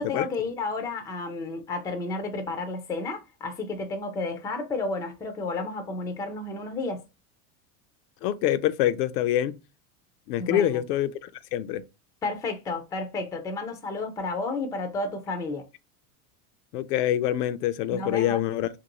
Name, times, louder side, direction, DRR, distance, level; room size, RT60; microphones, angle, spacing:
voice 1, 0.0-7.0 10.4-10.9 12.2-15.6 17.9-18.4, left 3 dB, 10° left, 0.3 m, -31 dB
voice 2, 8.2-9.6 10.3-11.8 16.7-18.7, left 12 dB, 80° left, 0.5 m, -25 dB
2.9 x 2.6 x 2.8 m
supercardioid pair, 115°, 47 cm